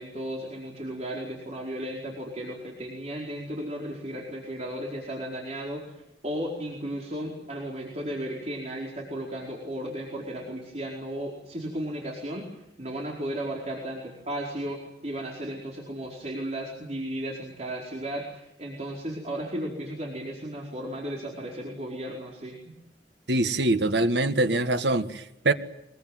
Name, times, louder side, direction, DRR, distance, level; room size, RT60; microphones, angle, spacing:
voice 1, 0.0-22.6, right 1 dB, 40° right, 4.7 m, -35 dB
voice 2, 23.3-25.5, right 2 dB, 80° right, 1.8 m, -24 dB
24.0 x 22.5 x 9.3 m
head